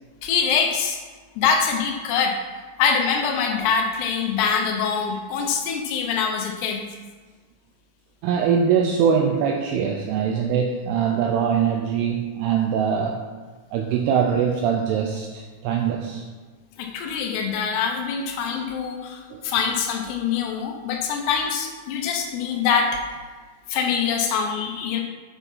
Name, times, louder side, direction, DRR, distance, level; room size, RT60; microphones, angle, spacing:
voice 1, 0.2-1.0 1.4-2.4 2.8-6.9 16.8-23.0 23.7-25.0, left 6 dB, 80° left, 3 dB, 2.7 m, -24 dB
voice 2, 8.2-13.2 13.7-16.2 19.3-19.4, right 7 dB, 85° right, 2 dB, 2.3 m, -22 dB
8.3 x 5.7 x 5.4 m, 1.4 s
omnidirectional pair, 5.3 m